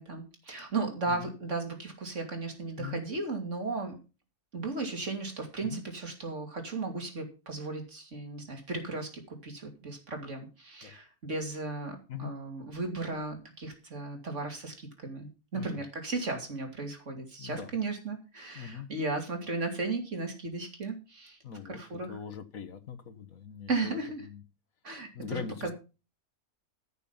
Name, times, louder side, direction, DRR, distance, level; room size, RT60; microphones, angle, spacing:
voice 1, 0.0-3.9 4.5-21.4 21.7-22.2 23.7-24.3 24.8-25.7, right 3 dB, 60° right, 3.1 m, -35 dB
voice 2, 17.4-17.7 18.5-18.9 21.4-21.8 22.1-24.4 25.2-25.7, left 7 dB, 80° left, 1.7 m, -41 dB
13.5 x 6.7 x 5.7 m
omnidirectional pair, 1.4 m